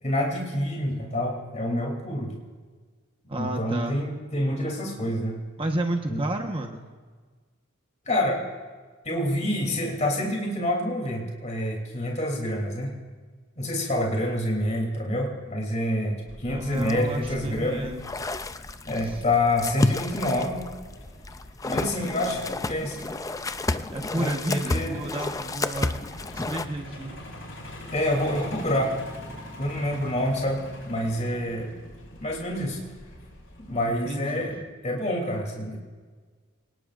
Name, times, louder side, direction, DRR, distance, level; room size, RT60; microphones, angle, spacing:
voice 1, 0.0-2.3 3.4-5.4 6.1-6.2 8.1-8.4 9.0-12.9 13.6-17.8 18.9-20.6 21.6-23.0 24.2-25.0 27.9-28.9 29.6-31.7 32.2-32.8 33.7-34.5 34.8-35.8, left 1 dB, 35° left, 0 dB, 3.2 m, -27 dB
voice 2, 3.3-4.0 5.6-6.8 16.5-18.0 19.0-19.2 21.6-22.5 23.9-26.0 26.3-27.2 33.8-34.7, right 1 dB, 25° right, 3 dB, 1.2 m, -32 dB
Truck, 16.3-34.0, left 1 dB, 70° left, 4.5 m, -44 dB
sound 1, 16.7-26.6, left 2 dB, 15° left, 0.4 m, -31 dB
26.5 x 19.0 x 2.6 m, 1.5 s
head